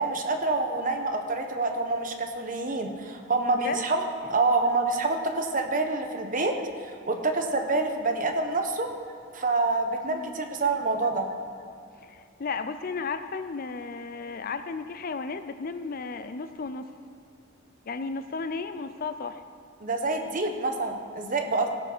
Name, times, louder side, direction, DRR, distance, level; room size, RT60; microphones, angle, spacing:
voice 1, 0.0-6.5 6.8-8.9 9.3-11.3 19.8-21.7, right 3 dB, 40° right, 4 dB, 1.0 m, -27 dB
voice 2, 10.1-10.4 12.0-16.9 17.9-19.4, left 4 dB, 45° left, 10 dB, 0.5 m, -34 dB
16.0 x 5.9 x 6.1 m, 2.4 s
head